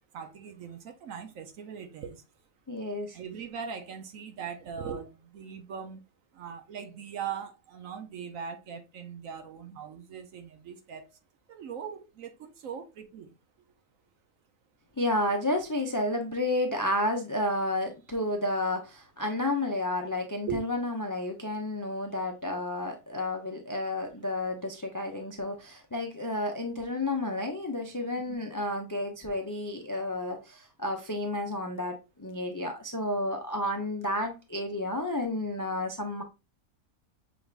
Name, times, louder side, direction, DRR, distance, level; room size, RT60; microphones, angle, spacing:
voice 1, 0.1-2.2 3.1-6.0 6.3-11.1 11.5-13.3 20.5-20.6 28.2-28.4, right 7 dB, 65° right, 1.1 m, -40 dB
voice 2, 2.7-3.2 15.0-36.2, left 1 dB, 30° left, 0.3 m, -31 dB
6.1 x 3.4 x 2.4 m
omnidirectional pair, 1.6 m